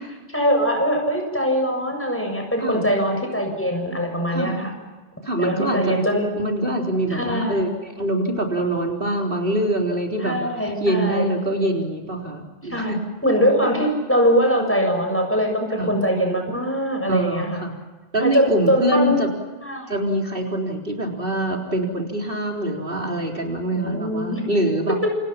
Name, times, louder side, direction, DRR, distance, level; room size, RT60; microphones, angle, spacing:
voice 1, 0.3-4.7 5.4-6.3 7.1-7.7 10.2-11.2 12.7-12.9 13.2-17.6 18.2-19.2 19.6-20.0 23.7-24.4 25.0-25.1, equal, 10° left, 3 dB, 7.2 m, -22 dB
voice 2, 5.2-5.8 6.4-13.0 15.8-15.9 17.1-17.7 18.1-19.3 19.9-25.0, right 1 dB, 60° right, 0 dB, 4.2 m, -24 dB
28.5 x 28.0 x 6.0 m, 1.3 s
omnidirectional pair, 1.1 m